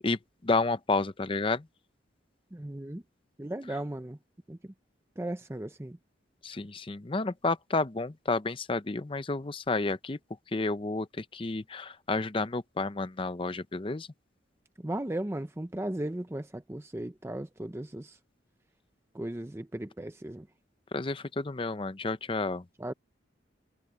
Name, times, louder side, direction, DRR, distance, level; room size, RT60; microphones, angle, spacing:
voice 1, 0.0-1.7 3.7-3.8 6.4-10.2 10.5-14.1 20.9-22.7, left 3 dB, 30° left, 0.6 m, -31 dB
voice 2, 2.5-3.0 3.4-4.2 4.5-4.7 5.2-6.0 14.8-18.2 19.1-20.5 22.8-22.9, right 1 dB, 15° right, 0.6 m, -36 dB
head